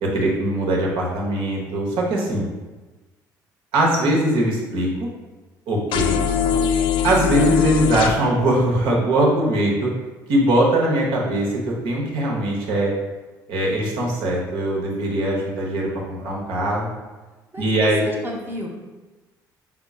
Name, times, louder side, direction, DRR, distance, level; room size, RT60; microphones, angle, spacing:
voice 1, 0.0-2.4 3.7-5.1 5.7-6.2 7.0-9.9 10.3-12.9 13.5-16.9 17.6-18.1, right 1 dB, 60° right, -2 dB, 1.1 m, -21 dB
sound 1, 5.9-8.1, left 8 dB, 55° left, 0.4 m, -21 dB
voice 2, 17.5-18.7, equal, 20° right, -1 dB, 0.9 m, -32 dB
5.8 x 3.6 x 2.4 m, 1.2 s
figure-of-eight pair, 50°, 10 cm